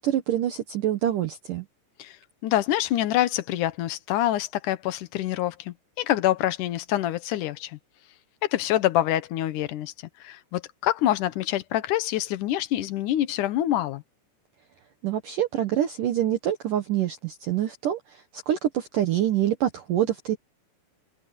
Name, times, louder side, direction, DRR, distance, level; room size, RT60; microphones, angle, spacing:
voice 1, 0.0-1.7 15.0-20.4, right 11 dB, 65° right, 2.2 m, -26 dB
voice 2, 2.4-7.8 8.4-14.0, left 13 dB, 75° left, 1.8 m, -26 dB
omnidirectional pair, 5.1 m